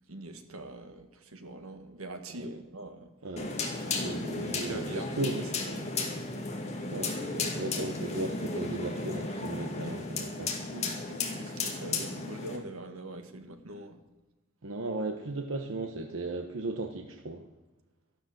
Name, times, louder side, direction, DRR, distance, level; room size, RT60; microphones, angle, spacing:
voice 1, 0.1-1.1 1.3-3.1 4.4-5.3 5.6-5.9 10.7-14.0, right 1 dB, 85° right, 6 dB, 1.7 m, -43 dB
sound 1, 3.4-12.6, left 3 dB, 30° left, 2.2 m, -34 dB
voice 2, 3.9-5.5 6.9-10.6 14.6-17.5, right 2 dB, 65° right, 4 dB, 1.1 m, -36 dB
13.0 x 12.0 x 7.8 m, 1.1 s
head